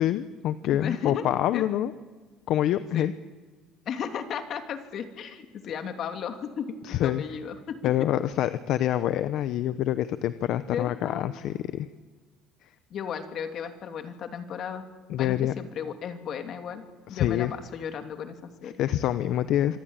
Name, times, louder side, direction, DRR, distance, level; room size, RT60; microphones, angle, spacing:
voice 1, 0.0-1.9 2.5-3.1 6.8-7.2 7.8-11.9 15.1-15.5 17.1-17.5 18.8-19.8, left 12 dB, 65° left, 13 dB, 0.9 m, -26 dB
voice 2, 0.7-1.2 1.5-1.6 2.9-3.1 3.8-7.8 10.7-11.3 12.9-14.8 15.2-16.8 17.1-18.7, left 7 dB, 50° left, 6 dB, 2.9 m, -35 dB
26.5 x 19.5 x 9.0 m, 1.4 s
cardioid pair, 140°, 0 cm